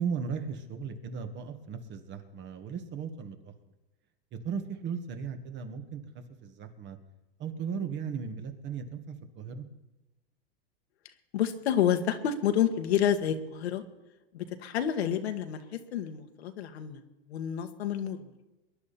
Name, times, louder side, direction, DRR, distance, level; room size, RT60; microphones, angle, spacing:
voice 1, 0.0-3.5 4.3-7.0 7.4-9.7, right 6 dB, 35° right, 7 dB, 1.9 m, -36 dB
voice 2, 11.3-13.8 14.3-15.6 15.9-17.0 17.3-18.3, left 9 dB, 80° left, 7 dB, 1.8 m, -29 dB
23.0 x 11.0 x 4.4 m, 1.0 s
hypercardioid pair, 125°, 32 cm